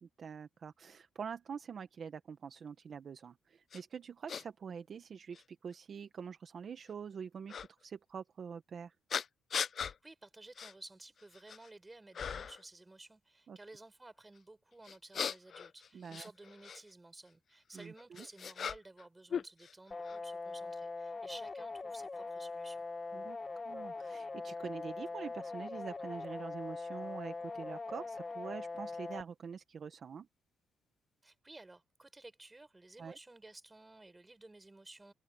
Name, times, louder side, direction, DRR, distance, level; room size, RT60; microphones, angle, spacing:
voice 1, 0.0-8.9 13.5-13.6 15.9-16.3 17.7-18.3 23.1-23.4 23.6-30.3 33.0-33.2, right 6 dB, 45° right, 1.1 m, -45 dB
sound 1, 3.7-3.8 4.3-4.4 5.3-5.4 7.5-7.7 9.1-10.0 10.6-10.7 11.2-11.7 12.1-12.6 14.8-16.8 17.8-19.0 19.3-20.2, left 7 dB, 45° left, 0.6 m, -39 dB
voice 2, 9.8-22.8 31.2-35.1, right 2 dB, 15° right, 5.2 m, -55 dB
sound 2, 19.9-29.2, left 3 dB, 25° left, 1.3 m, -42 dB
cardioid pair, 125°, 0 cm